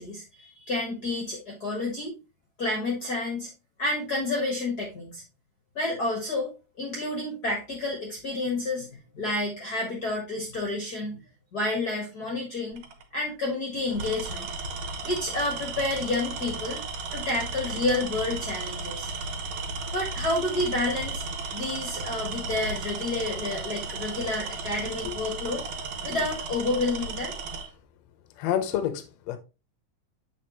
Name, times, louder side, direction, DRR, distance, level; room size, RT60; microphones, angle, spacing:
voice 1, 0.0-2.2 2.6-3.5 3.8-5.2 5.7-8.9 9.1-11.2 11.5-12.8 13.1-14.5 15.0-16.8 17.1-19.1 19.9-21.2 21.5-25.6 26.0-27.3, left 2 dB, 50° left, 1.1 m, -29 dB
Tools, 12.7-13.0 13.9-27.7, right 3 dB, 70° right, 2.3 m, -35 dB
voice 2, 28.4-29.4, left 10 dB, 75° left, 1.6 m, -28 dB
7.8 x 4.8 x 3.0 m
omnidirectional pair, 4.0 m